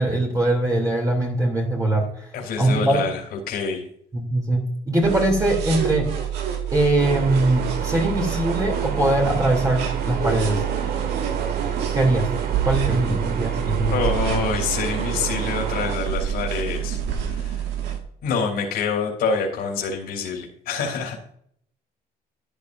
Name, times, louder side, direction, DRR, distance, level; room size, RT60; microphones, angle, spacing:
voice 1, 0.0-2.1 2.6-3.0 4.1-6.1 6.7-10.6 11.9-12.3 12.6-14.0, right 1 dB, 20° right, 0 dB, 2.9 m, -21 dB
voice 2, 2.3-3.2 3.5-3.8 13.9-17.0 17.3-17.5 18.2-21.3, left 5 dB, 70° left, 0 dB, 3.2 m, -26 dB
sound 1, 5.0-18.0, right 9 dB, 85° right, 1.9 m, -27 dB
sound 2, 7.0-16.0, right 6 dB, 65° right, 1.6 m, -31 dB
13.0 x 10.5 x 2.6 m, 0.67 s
cardioid pair, 110°, 17 cm